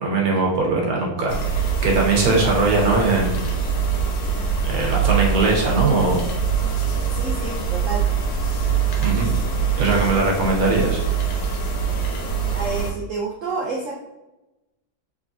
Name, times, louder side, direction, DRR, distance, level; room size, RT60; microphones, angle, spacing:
voice 1, 0.0-3.5 4.6-6.2 9.0-9.3 9.8-11.0, right 3 dB, 60° right, -1 dB, 1.2 m, -20 dB
sound 1, 1.3-12.9, right 6 dB, 70° left, 1.3 m, -23 dB
voice 2, 7.1-8.0 9.1-9.5 12.5-13.9, right 4 dB, 80° right, -3 dB, 0.7 m, -29 dB
3.8 x 3.1 x 2.5 m, 0.98 s
omnidirectional pair, 2.0 m